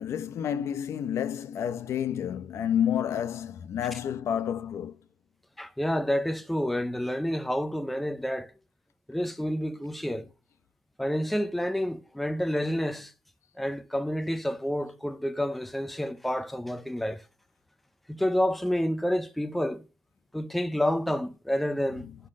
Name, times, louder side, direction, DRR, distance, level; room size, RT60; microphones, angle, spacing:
voice 1, 0.0-5.0 21.9-22.1, left 9 dB, 60° left, 0.7 m, -30 dB
voice 2, 5.6-8.5 9.1-10.3 11.0-13.1 13.6-17.2 18.1-19.8 20.3-22.1, equal, ahead, 0.5 m, -29 dB
10.5 x 5.7 x 6.3 m
wide cardioid pair, 180°, 5 cm